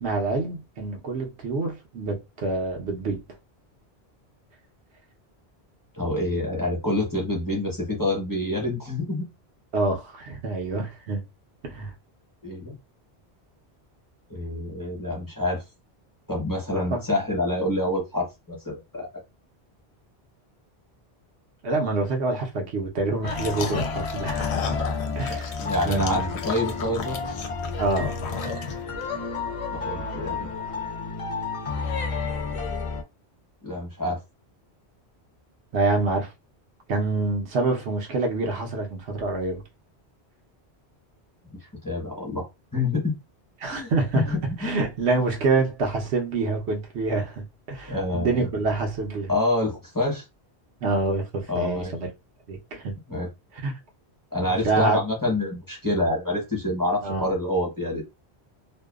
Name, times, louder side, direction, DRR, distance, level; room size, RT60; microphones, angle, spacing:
voice 1, 0.0-3.2 9.7-11.2 11.6-11.9 16.7-17.0 21.6-24.8 25.2-25.6 25.9-26.3 27.8-28.1 35.7-36.3 36.9-39.6 43.6-49.3 50.8-52.1 52.5-53.0 53.6-53.7 54.4-55.0 57.0-57.3, right 3 dB, 80° right, 1.0 m, -26 dB
voice 2, 5.9-9.3 12.4-12.7 14.3-15.6 16.3-19.1 25.3-27.2 29.7-30.5 33.6-34.2 41.8-43.1 43.7-44.8 47.9-48.3 49.3-50.2 51.5-51.9 53.1-53.3 54.3-58.0, left 1 dB, 20° left, 0.9 m, -27 dB
sound 1, 23.2-33.0, left 4 dB, 55° left, 0.4 m, -31 dB
sound 2, 23.3-29.0, left 6 dB, 90° left, 0.9 m, -34 dB
2.6 x 2.3 x 2.3 m
omnidirectional pair, 1.1 m